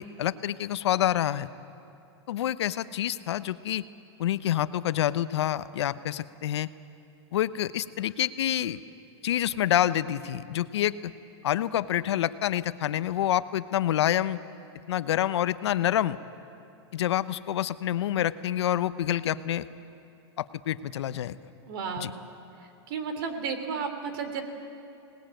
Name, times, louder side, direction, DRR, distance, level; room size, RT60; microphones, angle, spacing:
voice 1, 0.0-1.5 2.3-3.8 4.2-6.7 7.3-8.8 9.2-11.0 11.4-14.4 14.9-16.2 16.9-19.6 20.4-21.4 22.0-22.1, left 12 dB, 75° left, 14 dB, 0.9 m, -27 dB
voice 2, 21.6-22.1 22.9-24.4, right 5 dB, 55° right, 8 dB, 3.2 m, -33 dB
25.5 x 19.5 x 9.1 m, 2.7 s
supercardioid pair, 150°, 14 cm